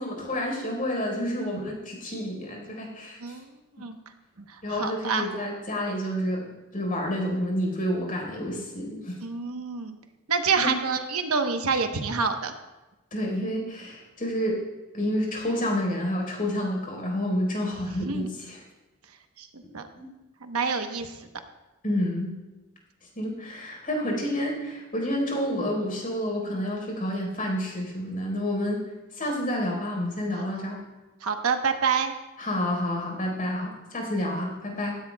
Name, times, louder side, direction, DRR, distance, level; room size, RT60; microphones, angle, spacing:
voice 1, 0.0-3.3 4.6-6.4 6.7-9.2 10.6-10.7 13.1-14.6 14.9-18.6 20.0-20.1 21.8-22.3 23.2-28.8 29.1-30.8 32.4-35.0, left 1 dB, 40° left, 0 dB, 4.2 m, -29 dB
voice 2, 4.7-5.3 9.2-10.0 10.3-12.5 18.0-18.3 19.4-19.5 19.7-19.8 20.4-21.1 30.4-30.5 31.2-32.1, right 5 dB, 80° right, 6 dB, 1.0 m, -27 dB
16.0 x 14.5 x 2.3 m, 1.1 s
head